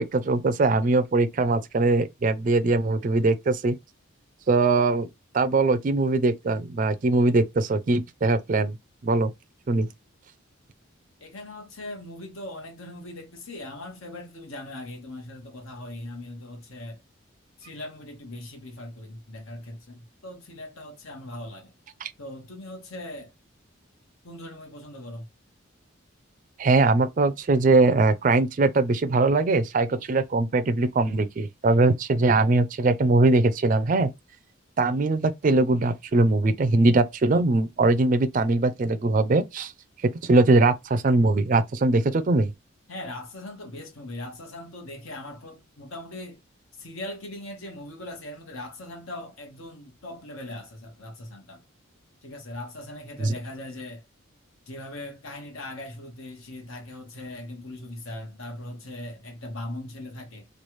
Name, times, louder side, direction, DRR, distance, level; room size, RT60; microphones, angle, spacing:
voice 1, 0.0-3.8 4.5-5.1 5.3-8.8 9.0-9.3 9.7-9.9 22.0-22.1 26.6-34.1 34.8-39.7 40.0-42.5 53.2-53.3, right 3 dB, 40° right, 0.3 m, -21 dB
voice 2, 11.2-17.0 17.6-21.7 22.2-23.3 24.2-25.3 42.9-46.4 46.7-51.6 52.2-54.0 54.7-60.5, left 1 dB, 80° left, 1.1 m, -40 dB
3.2 x 2.3 x 3.0 m
head